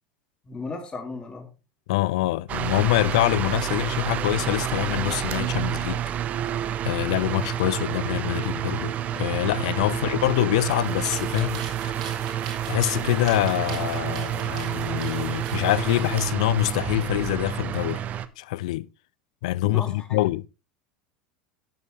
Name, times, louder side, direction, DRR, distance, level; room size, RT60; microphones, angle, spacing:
voice 1, 0.4-1.5 9.9-10.0 19.6-20.2, left 3 dB, 20° left, 2.8 m, -36 dB
voice 2, 1.9-6.0 6.8-11.9 12.7-18.0 18.4-18.9 19.4-20.4, left 17 dB, 60° left, 0.5 m, -25 dB
table fan, 2.5-18.3, right 10 dB, 40° right, 0.9 m, -29 dB
sound 1, 10.5-16.2, right 6 dB, 70° right, 3.6 m, -42 dB
12.5 x 9.5 x 3.1 m
figure-of-eight pair, 75°, 4 cm